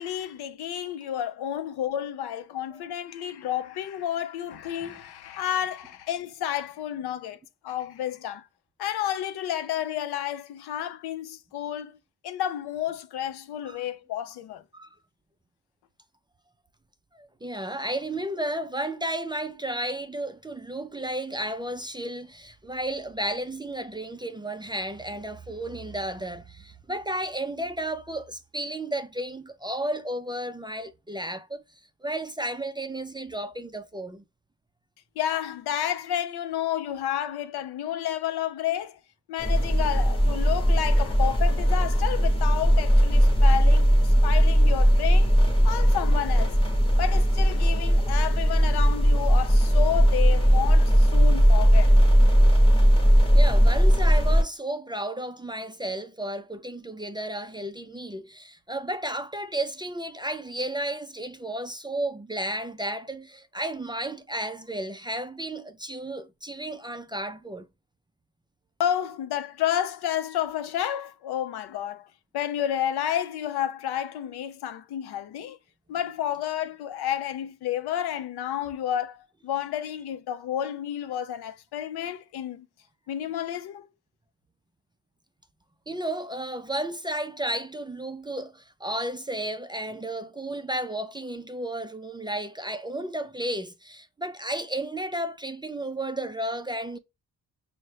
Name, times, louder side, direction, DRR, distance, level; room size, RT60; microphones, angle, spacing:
voice 1, 0.0-7.4 7.6-8.5 8.8-12.0 12.2-14.6 35.2-39.0 39.3-45.3 45.6-46.6 47.0-51.9 68.8-75.6 75.9-82.7 83.1-83.9, left 10 dB, 85° left, 0.6 m, -31 dB
voice 2, 17.1-31.6 32.0-34.2 53.3-67.7 85.9-97.0, right 1 dB, 15° right, 0.3 m, -33 dB
sound 1, 39.4-54.4, equal, 15° left, 0.9 m, -19 dB
5.3 x 2.1 x 3.2 m
cardioid pair, 80°, 38 cm